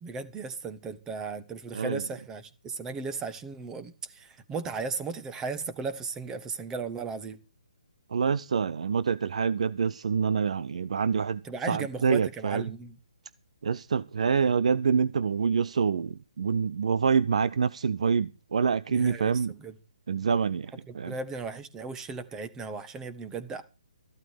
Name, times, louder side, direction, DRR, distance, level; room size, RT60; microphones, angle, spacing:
voice 1, 0.0-7.4 11.4-13.0 18.9-19.7 20.9-23.6, right 4 dB, 15° right, 1.5 m, -36 dB
voice 2, 1.7-2.0 8.1-12.6 13.6-19.5 20.1-21.1, right 6 dB, 60° right, 0.6 m, -26 dB
14.5 x 12.5 x 5.0 m
figure-of-eight pair, 140°, 4 cm